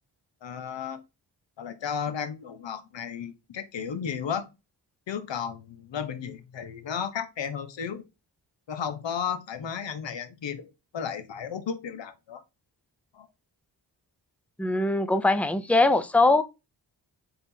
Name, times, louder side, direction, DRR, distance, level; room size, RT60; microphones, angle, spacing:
voice 1, 0.4-1.0 1.6-4.5 5.1-8.0 8.7-12.4 13.1-13.3, left 7 dB, 65° left, 0.9 m, -34 dB
voice 2, 14.6-16.4, left 2 dB, 5° left, 0.4 m, -21 dB
4.0 x 3.6 x 2.7 m
cardioid pair, 55°, 47 cm